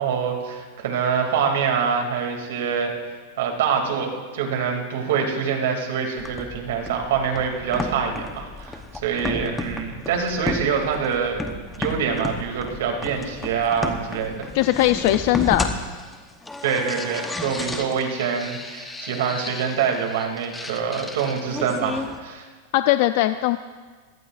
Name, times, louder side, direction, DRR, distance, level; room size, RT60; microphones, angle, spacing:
voice 1, 0.0-2.9 3.4-11.4 11.8-14.5 16.6-22.5, right 6 dB, 75° right, 2 dB, 2.7 m, -25 dB
sound 1, 6.2-22.2, left 2 dB, 10° left, 1.0 m, -33 dB
voice 2, 14.5-15.7 22.7-23.6, left 15 dB, 55° left, 10 dB, 0.4 m, -19 dB
23.5 x 17.5 x 2.6 m, 1.4 s
supercardioid pair, 155°, 0 cm